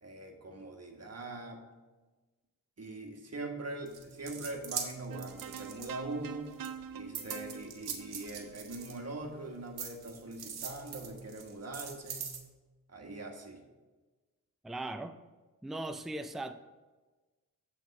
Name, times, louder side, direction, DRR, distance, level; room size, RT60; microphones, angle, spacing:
voice 1, 0.0-1.7 2.8-6.5 6.9-12.3 12.9-13.6, right 2 dB, 40° right, 2 dB, 1.5 m, -42 dB
sound 1, 3.9-6.3 6.6-9.3 9.8-12.4, right 7 dB, 85° right, 1.0 m, -42 dB
sound 2, 5.1-9.4, right 8 dB, 65° right, 0.6 m, -46 dB
voice 2, 14.6-15.2 15.6-16.5, right 2 dB, ahead, 9 dB, 0.4 m, -38 dB
7.8 x 3.6 x 6.3 m, 1.2 s
cardioid pair, 50°, 37 cm